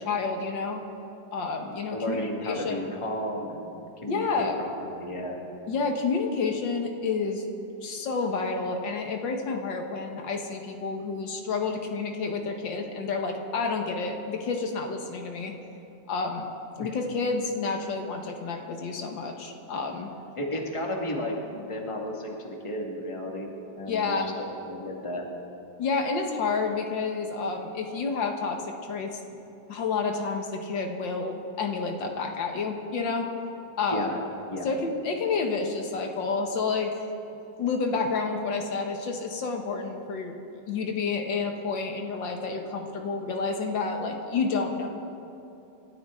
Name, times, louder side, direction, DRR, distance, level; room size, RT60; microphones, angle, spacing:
voice 1, 0.1-0.8 1.3-2.8 4.1-4.6 5.7-7.4 7.8-15.6 16.1-16.4 16.8-20.1 23.9-24.3 25.8-29.2 29.7-33.3 33.8-34.1 34.6-37.0 37.6-40.4 40.7-44.9, left 4 dB, 85° left, 3 dB, 2.1 m, -29 dB
voice 2, 1.9-5.4 16.8-16.9 20.4-23.5 23.8-25.3 33.9-34.2 34.5-34.7, left 1 dB, 15° left, 0 dB, 1.9 m, -33 dB
28.0 x 13.5 x 3.8 m, 2.8 s
omnidirectional pair, 2.0 m